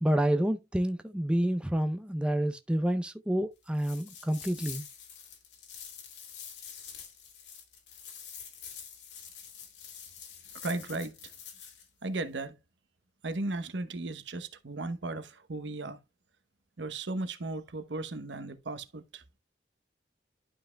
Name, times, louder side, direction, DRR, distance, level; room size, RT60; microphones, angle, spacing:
voice 1, 0.0-4.8, right 1 dB, 5° right, 0.5 m, -28 dB
sound 1, 3.7-11.8, left 7 dB, 75° left, 2.6 m, -46 dB
voice 2, 10.6-11.1 12.0-12.6 13.2-16.0 16.8-19.2, right 2 dB, 85° right, 0.9 m, -36 dB
11.5 x 5.5 x 2.2 m
head